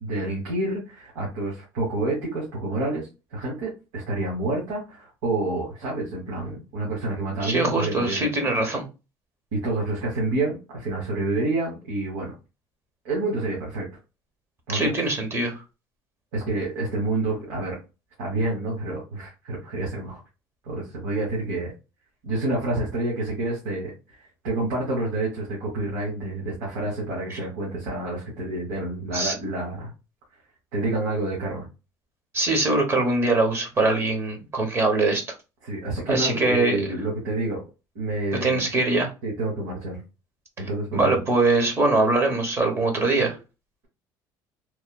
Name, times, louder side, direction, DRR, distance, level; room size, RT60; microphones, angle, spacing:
voice 1, 0.0-8.2 9.5-12.3 13.0-13.9 14.7-14.9 16.3-17.8 18.2-20.2 20.6-21.7 22.2-23.9 24.4-29.9 30.7-31.7 35.6-37.6 37.9-38.7 39.2-40.0 40.6-41.2, right 2 dB, 90° right, -4 dB, 1.2 m, -28 dB
voice 2, 7.4-8.9 14.7-15.6 27.3-27.4 29.1-29.3 32.3-35.2 36.1-36.8 38.3-39.1 40.9-43.4, right 2 dB, 30° right, 5 dB, 1.0 m, -22 dB
3.1 x 2.0 x 2.2 m, 0.29 s
cardioid pair, 110°, 9 cm